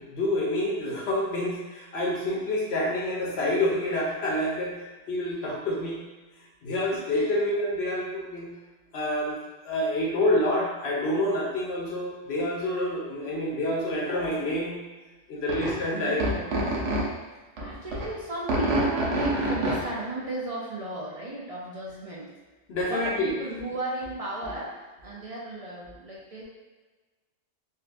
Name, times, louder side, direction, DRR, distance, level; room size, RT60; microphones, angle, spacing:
voice 1, 0.0-4.7 5.1-6.0 6.6-8.5 8.9-9.4 9.6-14.8 15.3-16.2 22.7-23.4, left 1 dB, 65° left, -4 dB, 1.0 m, -27 dB
voice 2, 6.9-7.3 15.9-16.7 17.6-22.3 22.9-24.7 25.0-26.4, right 2 dB, 45° right, -5 dB, 0.4 m, -35 dB
sound 1, 15.5-15.7 16.2-17.0 17.6-18.1 18.5-19.9, right 1 dB, 85° right, 1.0 m, -26 dB
4.0 x 2.3 x 2.4 m, 1.2 s
omnidirectional pair, 1.2 m